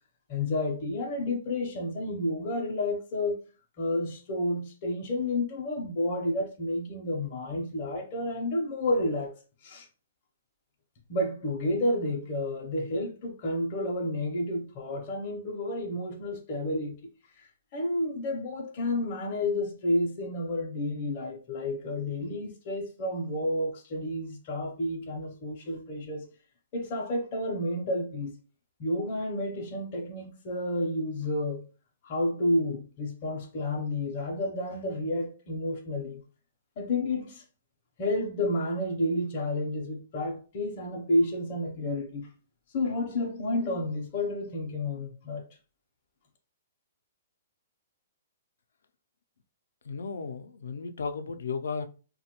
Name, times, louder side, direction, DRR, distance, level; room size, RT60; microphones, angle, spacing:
voice 1, 0.3-3.4 3.8-9.3 9.6-9.9 11.1-17.0 17.4-26.3 26.7-28.4 28.8-31.6 32.0-36.2 36.8-37.4 38.0-42.3 42.7-45.4, left 1 dB, 30° left, 0.5 m, -30 dB
voice 2, 49.8-51.9, left 5 dB, 85° left, 0.4 m, -34 dB
3.2 x 2.2 x 2.8 m
hypercardioid pair, 170°, 0 cm